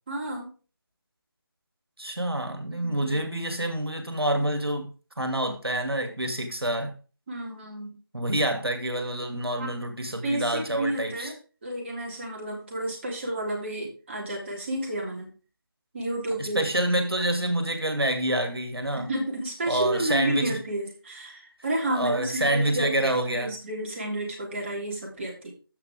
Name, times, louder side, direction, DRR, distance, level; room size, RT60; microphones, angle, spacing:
voice 1, 0.1-0.5 2.8-3.2 7.3-7.9 9.6-9.7 10.2-11.3 11.6-15.3 15.9-16.7 18.9-25.5, right 1 dB, 30° right, -1 dB, 3.1 m, -31 dB
voice 2, 2.0-7.0 8.1-11.3 16.4-19.1 19.7-20.6 21.9-23.5, right 1 dB, 85° right, 5 dB, 2.5 m, -27 dB
14.5 x 6.0 x 3.6 m, 0.36 s
figure-of-eight pair, 165°, 12 cm